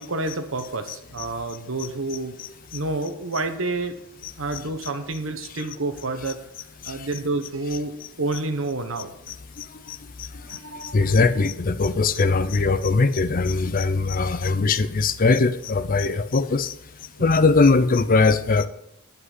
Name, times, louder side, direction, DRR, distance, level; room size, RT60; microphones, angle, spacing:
voice 1, 0.0-2.3 2.7-3.9 4.4-6.4 6.9-9.1 10.3-11.1, right 2 dB, 70° right, 7 dB, 1.2 m, -29 dB
voice 2, 2.4-2.8 4.2-4.9 5.4-5.7 6.8-7.2 8.3-8.4 9.3-16.8 17.2-18.7, left 3 dB, 40° left, 13 dB, 0.5 m, -22 dB
9.7 x 5.5 x 8.3 m, 0.80 s
head